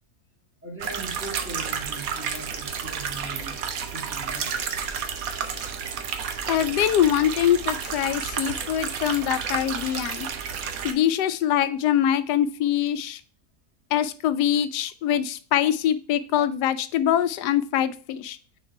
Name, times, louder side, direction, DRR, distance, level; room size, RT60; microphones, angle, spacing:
voice 1, 0.6-3.6 3.9-4.5, right 2 dB, 10° right, -4 dB, 2.1 m, -39 dB
sound 1, 0.8-10.9, right 7 dB, 65° right, 1.1 m, -31 dB
voice 2, 6.5-10.3 10.8-13.2 13.9-18.4, left 10 dB, 85° left, 13 dB, 1.1 m, -23 dB
6.5 x 3.9 x 4.5 m, 0.40 s
omnidirectional pair, 1.7 m